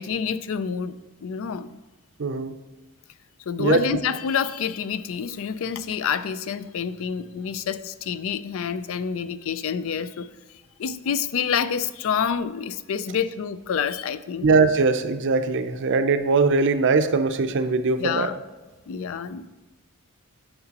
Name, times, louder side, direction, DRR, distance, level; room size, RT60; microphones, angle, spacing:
voice 1, 0.0-1.8 3.5-10.3 10.8-14.5 18.0-18.4 18.9-19.5, left 7 dB, 65° left, 14 dB, 0.4 m, -28 dB
voice 2, 2.2-2.5 3.6-3.8 14.4-18.3, right 4 dB, 55° right, 10 dB, 0.5 m, -21 dB
9.7 x 6.6 x 2.9 m, 1.2 s
head